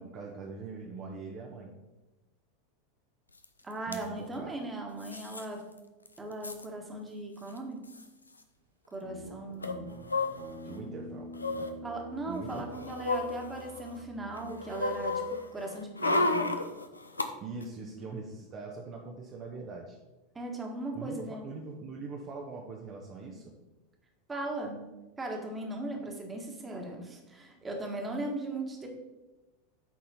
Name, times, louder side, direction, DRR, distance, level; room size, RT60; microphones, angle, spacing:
voice 1, 0.0-1.8 3.9-4.5 10.6-11.7 12.2-12.8 17.4-20.0 20.9-23.6, right 4 dB, 35° right, 0 dB, 0.8 m, -42 dB
sound 1, 3.4-3.5 3.7-4.0 5.0-5.4 5.8-5.9 6.1-6.7 7.5-7.6 7.8-8.0 9.6-10.8 11.3-11.7 12.3-14.0 14.3-17.3 17.6-17.7, left 2 dB, 85° left, 0.5 m, -32 dB
voice 2, 3.6-5.6 6.2-7.9 8.9-9.9 11.8-16.5 20.3-21.4 24.3-24.8 25.2-28.9, right 2 dB, 15° right, 2 dB, 1.4 m, -38 dB
Guitar, 9.0-15.6, equal, 90° right, 1.1 m, -47 dB
8.5 x 4.2 x 4.2 m, 1.1 s
figure-of-eight pair, 85°, 0 cm